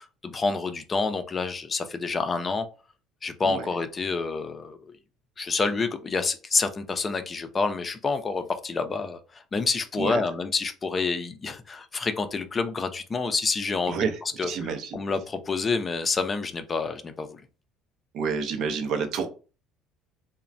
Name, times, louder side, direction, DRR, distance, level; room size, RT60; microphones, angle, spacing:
voice 1, 0.0-2.7 3.2-4.9 5.4-14.1 14.4-17.4, left 4 dB, 30° left, 0.4 m, -28 dB
voice 2, 13.9-15.0 18.1-19.3, right 5 dB, 60° right, 0.5 m, -29 dB
3.0 x 2.1 x 2.5 m
hypercardioid pair, 75°, 0 cm